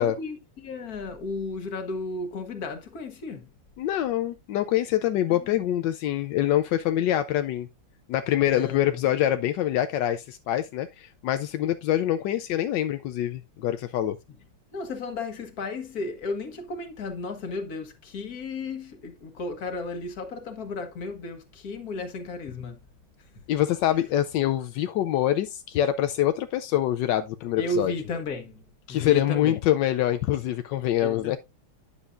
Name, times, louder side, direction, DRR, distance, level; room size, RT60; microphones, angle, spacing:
voice 1, 0.0-3.5 5.3-5.6 8.5-9.1 14.7-22.8 27.6-29.6 31.0-31.4, left 3 dB, 45° left, 1.7 m, -34 dB
voice 2, 3.8-7.7 8.1-14.2 23.5-27.9 28.9-31.4, left 12 dB, 75° left, 1.1 m, -25 dB
9.9 x 7.0 x 2.5 m
omnidirectional pair, 2.4 m